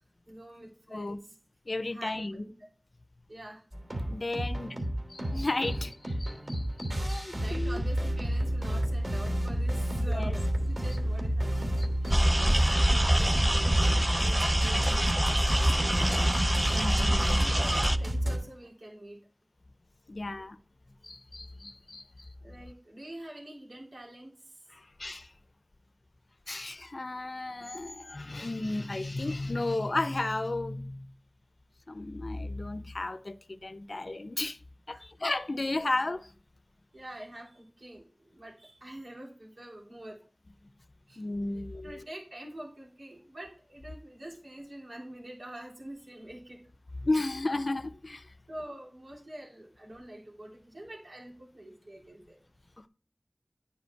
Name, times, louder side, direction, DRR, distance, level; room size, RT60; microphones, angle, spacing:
voice 1, 0.3-1.3 1.9-2.5 3.3-3.6 4.1-4.2 5.3-5.4 7.3-11.8 12.1-13.7 14.2-15.6 17.2-19.2 22.4-24.5 34.9-35.0 35.8-35.9 36.9-40.2 41.1-41.2 41.5-46.6 48.5-52.4, right 1 dB, 80° right, 3.3 m, -45 dB
voice 2, 1.7-2.4 4.1-4.8 5.1-7.8 10.0-10.3 11.8-12.5 16.0-17.4 20.1-20.6 21.0-22.3 24.7-25.3 26.5-31.1 31.9-34.6 34.9-36.3 41.2-42.1 47.0-48.3, left 2 dB, 65° left, 0.5 m, -34 dB
sound 1, 3.7-18.4, equal, 45° right, 3.0 m, -30 dB
sound 2, 12.1-18.0, right 1 dB, 20° right, 0.5 m, -26 dB
sound 3, 14.5-18.7, equal, 10° left, 1.6 m, -48 dB
9.6 x 5.0 x 4.5 m
wide cardioid pair, 40°, 0 cm